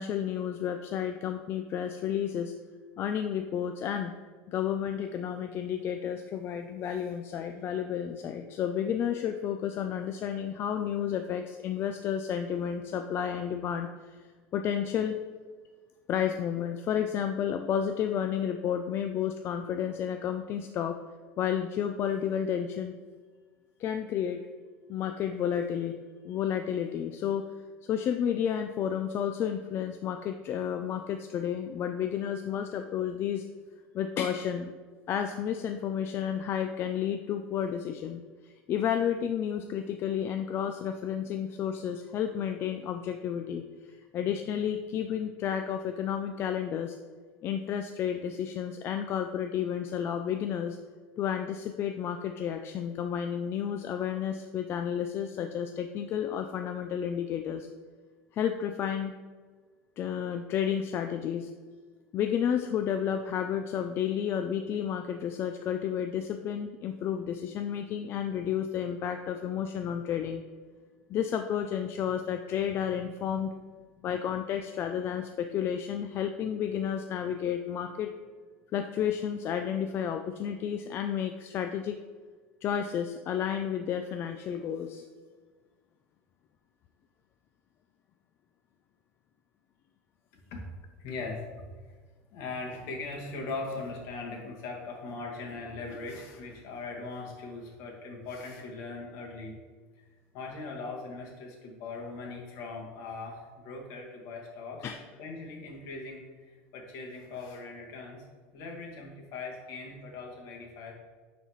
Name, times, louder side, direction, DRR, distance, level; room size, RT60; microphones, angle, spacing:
voice 1, 0.0-2.5 3.0-4.1 4.5-14.2 14.5-15.2 16.1-21.0 21.4-22.9 23.8-24.4 24.9-25.9 26.3-27.5 27.8-33.4 33.9-34.7 35.1-47.0 47.4-50.8 51.2-57.7 58.3-59.1 60.0-61.5 62.1-70.4 71.1-73.5 74.0-78.1 78.7-82.0 82.6-85.0 104.8-105.0, left 9 dB, 40° left, 6 dB, 0.4 m, -31 dB
voice 2, 91.0-92.0 92.3-99.5 100.0-100.1 100.3-104.9 105.2-108.2 108.5-110.9, left 3 dB, 60° left, -1 dB, 1.8 m, -40 dB
8.9 x 4.1 x 3.1 m, 1.5 s
supercardioid pair, 125°, 6 cm